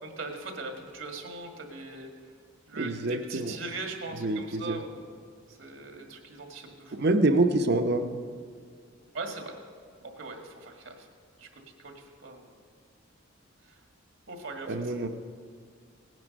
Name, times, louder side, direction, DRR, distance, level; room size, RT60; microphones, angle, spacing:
voice 1, 0.0-2.1 2.7-3.0 3.3-5.1 5.5-7.0 9.1-9.5 10.2-11.1 11.4-11.5 11.8-12.5 13.7-13.8 14.3-14.8 15.0-15.1, right 3 dB, 70° right, 3 dB, 1.9 m, -40 dB
voice 2, 2.8-3.6 4.2-4.8 6.9-8.1 14.7-15.1, right 2 dB, 55° right, 8 dB, 0.8 m, -26 dB
17.5 x 9.5 x 5.3 m, 2.2 s
head